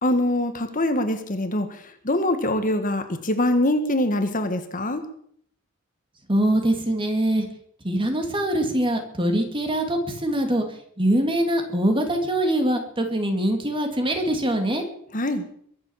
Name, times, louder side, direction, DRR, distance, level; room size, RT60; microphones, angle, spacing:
voice 1, 0.0-5.0 15.1-15.4, left 1 dB, 40° left, 8 dB, 1.7 m, -24 dB
voice 2, 6.3-7.5 7.8-10.7 11.0-14.8, right 1 dB, 25° right, 4 dB, 2.8 m, -23 dB
22.5 x 7.8 x 7.4 m, 0.64 s
head